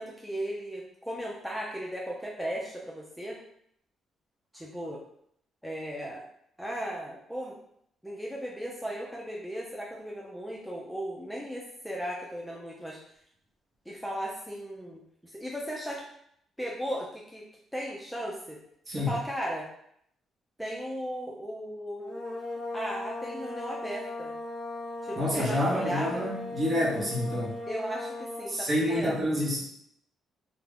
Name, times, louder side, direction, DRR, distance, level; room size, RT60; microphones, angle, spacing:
voice 1, 0.0-3.4 4.5-5.0 5.6-6.2 6.6-7.5 8.0-13.0 13.9-15.0 15.3-16.0 16.6-17.4 17.7-18.6 19.1-19.7 20.6-22.2 22.7-24.4 25.0-26.3 27.7-29.1, equal, ahead, -4 dB, 0.5 m, -36 dB
voice 2, 18.9-19.2 25.2-27.6 28.5-29.6, left 1 dB, 40° right, -4 dB, 0.9 m, -28 dB
sound 1, 22.0-28.6, left 2 dB, 35° left, 0.8 m, -38 dB
2.3 x 2.1 x 3.4 m, 0.70 s
cardioid pair, 90°, 0 cm